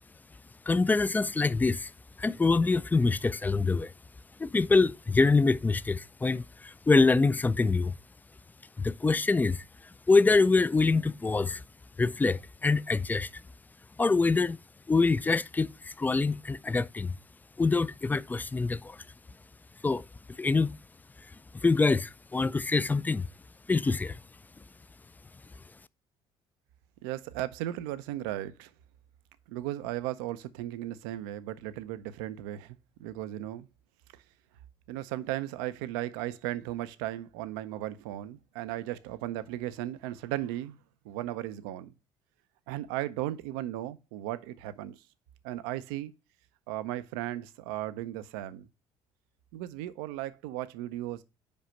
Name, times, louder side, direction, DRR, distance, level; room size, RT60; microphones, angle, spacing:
voice 1, 0.7-1.9 2.2-3.9 4.4-7.9 8.8-9.6 10.1-11.6 12.0-13.3 14.0-14.6 14.9-17.1 17.6-19.0 19.8-20.0 20.4-20.7 21.6-23.3 23.7-24.2, left 3 dB, 15° left, 0.4 m, -25 dB
voice 2, 27.0-28.7 29.5-33.7 34.9-40.8 41.0-41.9 42.7-45.0 45.4-46.1 46.7-48.7 49.5-51.2, right 14 dB, 80° right, 0.6 m, -36 dB
5.3 x 5.0 x 5.7 m
hypercardioid pair, 65°, 12 cm